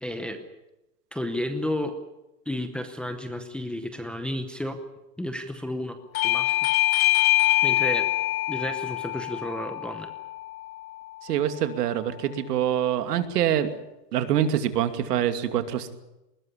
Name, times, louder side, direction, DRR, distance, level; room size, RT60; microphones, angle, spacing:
voice 1, 0.0-0.4 1.1-1.9 2.5-4.8 5.2-6.0 6.2-6.6 7.6-8.1 8.5-10.1, left 1 dB, ahead, 6 dB, 0.8 m, -32 dB
Bell / Doorbell, 6.1-11.3, left 16 dB, 60° left, 0.9 m, -25 dB
voice 2, 11.2-13.7 14.1-15.9, right 10 dB, 75° right, 9 dB, 2.7 m, -25 dB
20.5 x 18.0 x 9.9 m, 0.95 s
supercardioid pair, 165°, 48 cm